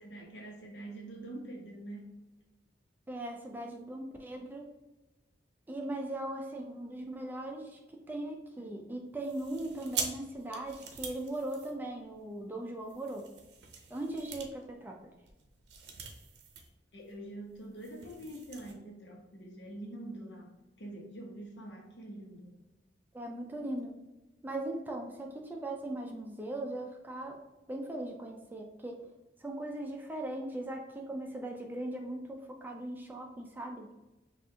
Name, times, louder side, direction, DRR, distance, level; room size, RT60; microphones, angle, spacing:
voice 1, 0.0-2.1 8.6-8.9 16.9-22.5, right 1 dB, 75° left, 0 dB, 1.0 m, -45 dB
voice 2, 3.1-4.7 5.7-7.8 8.1-13.3 13.9-15.0 23.1-23.9 24.4-27.4 27.7-29.0 29.4-33.9, right 1 dB, 10° right, 1 dB, 0.4 m, -39 dB
sound 1, 9.2-12.3 12.8-16.7 17.0-17.1 17.5-18.7, right 6 dB, 65° right, 0.6 m, -43 dB
5.8 x 2.5 x 2.8 m, 1.1 s
head